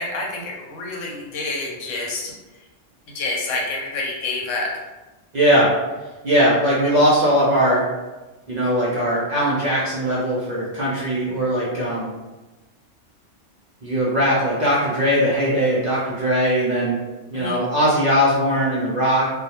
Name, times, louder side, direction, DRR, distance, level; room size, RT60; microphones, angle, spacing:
voice 1, 0.0-2.3 3.1-4.7 17.3-17.6, left 2 dB, 85° left, -2 dB, 1.0 m, -28 dB
voice 2, 5.3-5.7 6.2-7.8 8.5-12.1 13.8-17.0 17.3-19.3, equal, 55° right, -7 dB, 0.5 m, -20 dB
2.2 x 2.1 x 2.8 m, 1.2 s
omnidirectional pair, 1.3 m